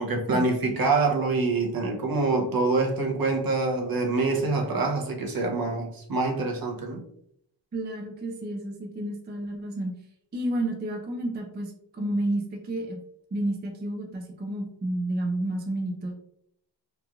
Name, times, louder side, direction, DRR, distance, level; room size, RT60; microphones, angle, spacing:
voice 1, 0.0-7.0, right 3 dB, 50° right, 1 dB, 0.7 m, -25 dB
voice 2, 7.7-9.9 10.3-13.0 13.3-16.1, right 1 dB, 25° right, 1 dB, 0.4 m, -30 dB
3.0 x 2.4 x 2.3 m, 0.71 s
wide cardioid pair, 95°, 45 cm